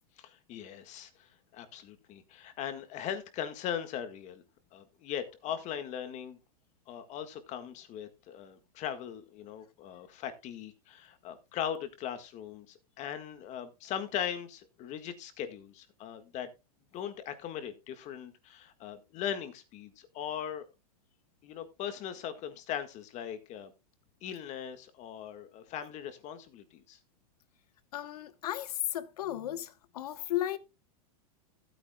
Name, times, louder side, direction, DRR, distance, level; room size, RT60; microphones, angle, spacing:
voice 1, 0.2-4.4 4.7-6.4 6.9-16.5 16.9-20.6 21.4-23.7 24.2-27.0, left 9 dB, 40° left, 1.6 m, -39 dB
voice 2, 27.9-30.6, left 13 dB, 85° left, 1.1 m, -34 dB
15.0 x 9.0 x 2.3 m
supercardioid pair, 135°, 19 cm